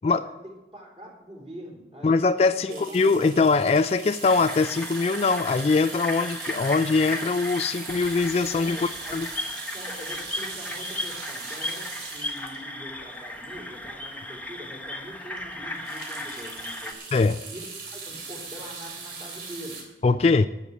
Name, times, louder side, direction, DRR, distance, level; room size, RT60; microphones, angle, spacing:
voice 1, 0.7-2.3 2.7-3.2 8.6-9.1 9.7-11.8 12.1-16.9 17.5-19.8, equal, 35° right, -1 dB, 3.7 m, -43 dB
voice 2, 2.0-9.3 17.1-17.4 20.0-20.5, left 4 dB, 35° left, 12 dB, 0.3 m, -22 dB
sound 1, 2.7-14.0 14.5-14.6 14.8-15.0 15.3-19.8, right 4 dB, 70° right, 3.6 m, -40 dB
sound 2, 4.2-16.9, left 1 dB, 10° left, 0.9 m, -36 dB
12.0 x 8.1 x 6.1 m, 1.0 s
head